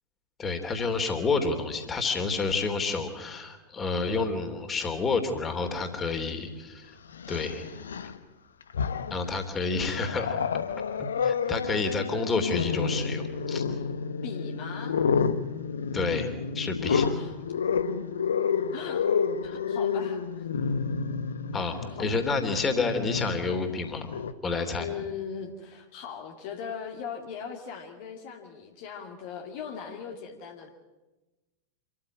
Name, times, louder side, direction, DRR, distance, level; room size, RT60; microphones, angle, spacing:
voice 1, 0.4-7.0 7.3-7.7 9.1-10.4 11.0-13.6 15.9-17.0 21.5-24.1 24.4-24.9, left 4 dB, 20° left, 6 dB, 3.2 m, -29 dB
Growling, 6.1-6.2 7.1-8.2 8.6-9.3 9.7-24.3, left 6 dB, 70° left, 1.1 m, -30 dB
voice 2, 14.2-15.0 16.9-17.4 18.7-19.0 19.4-20.5 21.6-22.1 24.8-30.7, left 7 dB, 50° left, 2 dB, 2.3 m, -39 dB
26.5 x 14.5 x 9.9 m, 1.1 s
figure-of-eight pair, 90°, 0 cm